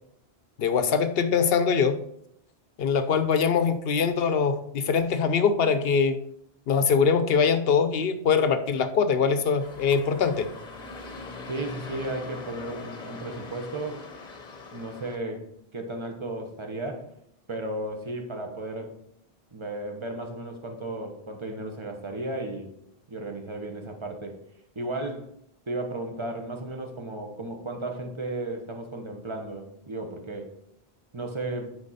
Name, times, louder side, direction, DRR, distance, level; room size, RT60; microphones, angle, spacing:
voice 1, 0.6-2.0 2.8-6.2 6.7-10.5, left 6 dB, 70° left, 10 dB, 0.9 m, -23 dB
sound 1, 9.6-15.2, left 3 dB, 45° left, 1.0 m, -41 dB
voice 2, 11.5-14.0 14.7-15.4 15.7-17.1 17.5-18.9 19.5-22.7 23.1-24.3 24.7-25.3 25.7-30.5 31.1-31.7, right 2 dB, 30° right, 4 dB, 1.1 m, -34 dB
8.5 x 4.7 x 4.1 m, 0.74 s
omnidirectional pair, 1.1 m